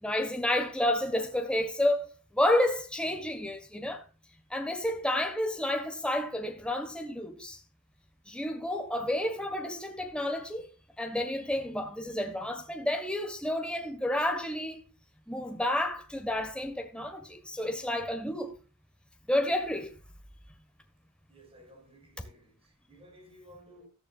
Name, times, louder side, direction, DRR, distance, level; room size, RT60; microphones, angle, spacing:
voice 1, 0.0-4.0 4.5-7.6 8.3-10.7 11.0-14.8 15.3-18.6 19.3-20.0, left 1 dB, 5° left, 1.4 m, -30 dB
voice 2, 21.3-23.9, equal, 25° right, 5.7 m, -55 dB
14.5 x 13.5 x 2.4 m
head